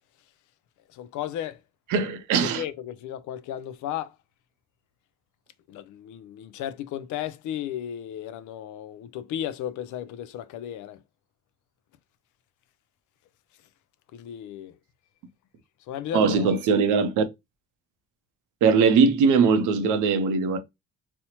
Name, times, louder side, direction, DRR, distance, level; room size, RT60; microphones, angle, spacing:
voice 1, 0.9-1.6 2.0-2.1 2.4-4.2 5.7-11.0 14.1-14.8 15.9-16.5, left 11 dB, 80° left, 0.5 m, -34 dB
voice 2, 1.9-2.6 16.1-17.2 18.6-20.6, right 5 dB, 90° right, 0.6 m, -20 dB
4.2 x 2.1 x 2.9 m
cardioid pair, 90°, 30 cm